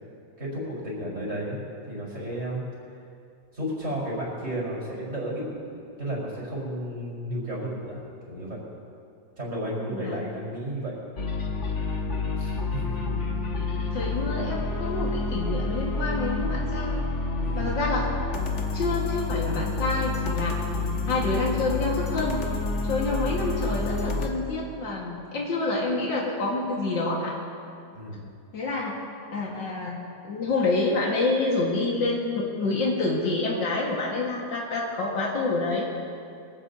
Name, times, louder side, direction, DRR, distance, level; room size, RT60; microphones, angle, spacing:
voice 1, 0.4-1.6 1.8-2.6 3.5-8.0 8.3-8.6 9.4-11.0 12.4-13.1 17.4-17.8 27.9-28.3, right 1 dB, 40° right, -6 dB, 5.1 m, -33 dB
sound 1, 11.2-24.3, left 3 dB, 45° left, 1.4 m, -28 dB
voice 2, 13.9-17.0 17.5-18.1 18.7-20.6 21.1-22.4 22.8-27.4 28.5-28.9 29.3-35.8, left 3 dB, 85° left, -4 dB, 2.4 m, -27 dB
23.5 x 16.5 x 2.8 m, 2.5 s
omnidirectional pair, 1.9 m